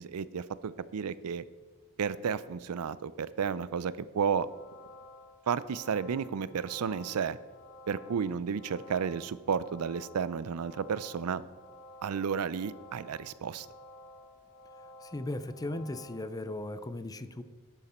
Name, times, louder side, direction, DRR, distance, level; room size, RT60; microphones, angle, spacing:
voice 1, 0.0-1.4 2.0-4.5 5.5-7.4 7.9-11.4 12.0-13.7, right 6 dB, 80° right, 17 dB, 0.4 m, -32 dB
sound 1, 4.5-16.2, left 2 dB, 70° left, 1.3 m, -52 dB
voice 2, 15.0-17.4, left 1 dB, 15° left, 12 dB, 0.5 m, -37 dB
11.0 x 11.0 x 4.3 m, 1.4 s
head